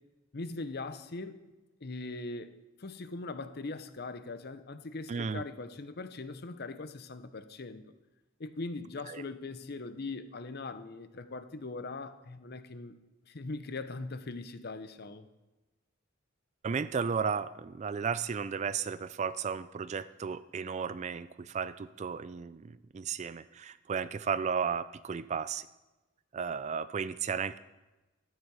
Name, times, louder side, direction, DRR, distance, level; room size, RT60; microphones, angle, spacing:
voice 1, 0.3-1.4 1.8-2.5 2.8-7.8 8.4-13.0 13.3-15.3, left 3 dB, 50° left, 11 dB, 0.7 m, -40 dB
voice 2, 5.1-5.4 9.1-9.2 16.6-25.7 26.3-27.6, right 6 dB, 35° right, 15 dB, 0.3 m, -34 dB
12.5 x 9.8 x 4.8 m, 1.1 s
head